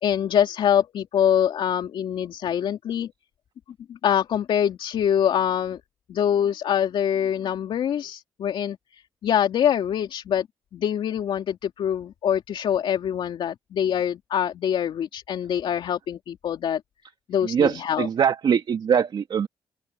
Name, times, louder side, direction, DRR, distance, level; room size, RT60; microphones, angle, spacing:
voice 1, 0.0-3.1 3.9-5.8 6.1-10.5 10.7-16.8 17.3-18.1, left 9 dB, 80° left, 3.1 m, -24 dB
voice 2, 17.4-19.5, right 7 dB, 65° right, 2.1 m, -22 dB
open air
cardioid pair, 65°, 9 cm